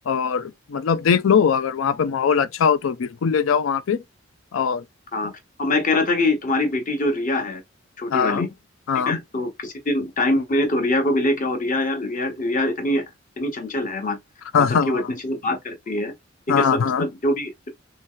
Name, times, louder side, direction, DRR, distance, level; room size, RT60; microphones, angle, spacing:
voice 1, 0.1-4.0 4.5-4.8 8.1-8.5 8.9-9.2 14.5-15.1 16.5-17.1, left 6 dB, 80° left, 0.4 m, -21 dB
voice 2, 5.6-7.6 8.0-8.5 9.1-13.1 13.4-14.2 14.6-16.1 16.5-17.7, left 1 dB, 40° left, 1.0 m, -24 dB
3.2 x 2.8 x 3.6 m
head